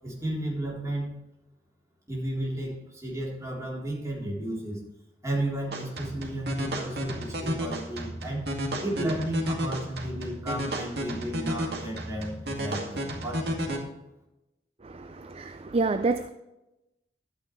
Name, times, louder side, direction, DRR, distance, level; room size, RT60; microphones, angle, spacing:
voice 1, 0.0-1.2 2.1-4.8 5.2-8.5 8.8-13.7, right 1 dB, 20° right, -4 dB, 3.7 m, -33 dB
sound 1, 5.7-13.8, equal, 65° right, 2.2 m, -32 dB
voice 2, 14.8-16.3, right 3 dB, 35° right, 9 dB, 0.5 m, -28 dB
12.5 x 9.4 x 3.2 m, 0.93 s
head